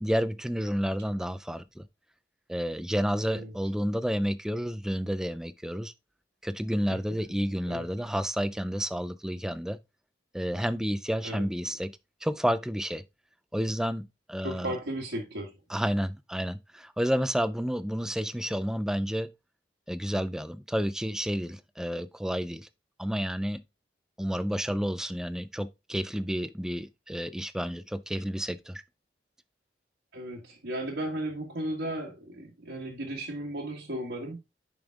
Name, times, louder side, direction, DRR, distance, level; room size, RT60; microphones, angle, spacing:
voice 1, 0.0-1.8 2.5-5.9 6.4-9.8 10.3-11.9 12.2-13.0 13.5-14.7 15.7-19.3 19.9-22.7 23.0-23.6 24.2-28.8, equal, 5° right, 0.4 m, -30 dB
voice 2, 14.4-15.6 30.1-34.4, right 1 dB, 75° right, 1.8 m, -35 dB
7.0 x 5.3 x 3.5 m
head